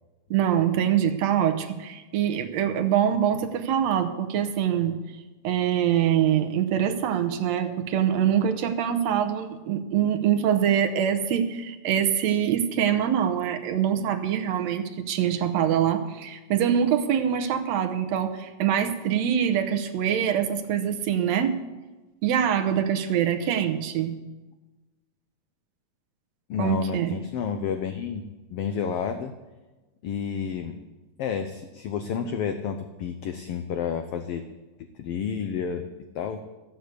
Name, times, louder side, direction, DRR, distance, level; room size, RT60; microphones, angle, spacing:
voice 1, 0.3-4.9 5.4-21.6 22.2-24.1 26.6-27.2, right 9 dB, 70° right, 7 dB, 1.9 m, -24 dB
voice 2, 26.5-28.2 28.5-29.3 30.0-30.8 31.2-34.4 34.8-35.9 36.1-36.4, left 7 dB, 80° left, 8 dB, 1.3 m, -30 dB
14.0 x 8.1 x 8.1 m, 1.2 s
omnidirectional pair, 3.5 m